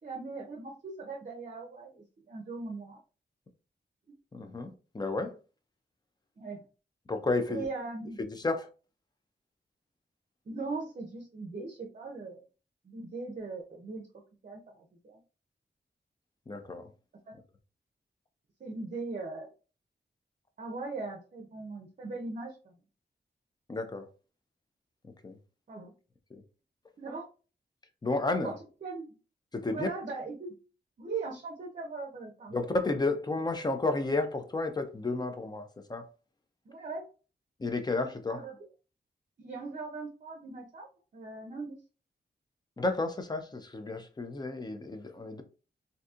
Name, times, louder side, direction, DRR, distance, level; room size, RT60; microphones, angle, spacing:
voice 1, 0.0-3.0 6.4-6.6 7.5-8.2 10.5-12.5 12.8-14.1 14.4-15.2 17.3-17.4 18.6-19.5 20.6-22.8 25.7-25.9 27.0-27.3 28.4-28.5 28.8-29.1 29.7-30.5 31.0-32.6 36.7-37.1 38.3-38.6 39.4-41.8, right 3 dB, 45° right, 0.6 m, -39 dB
voice 2, 4.3-5.4 7.1-7.7 8.2-8.7 16.5-16.9 23.7-24.1 25.0-25.4 26.3-26.4 28.0-28.6 29.5-29.9 32.5-36.1 37.6-38.4 42.8-45.4, left 3 dB, 25° left, 0.5 m, -32 dB
3.9 x 2.6 x 2.4 m
wide cardioid pair, 180°, 18 cm